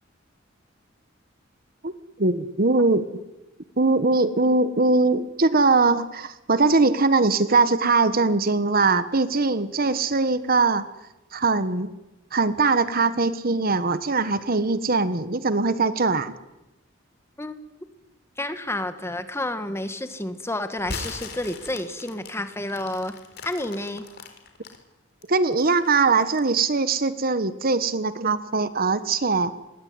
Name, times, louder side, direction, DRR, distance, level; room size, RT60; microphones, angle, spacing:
voice 1, 2.2-3.0 3.8-10.8 11.3-11.9 12.3-16.3 25.3-29.5, right 3 dB, 50° right, 13 dB, 1.3 m, -21 dB
voice 2, 18.4-23.1 23.5-24.0, left 1 dB, 15° left, 9 dB, 2.0 m, -30 dB
sound 1, 20.8-24.8 25.2-26.5, left 4 dB, 55° left, 4.2 m, -39 dB
27.0 x 21.5 x 9.7 m, 1.0 s
head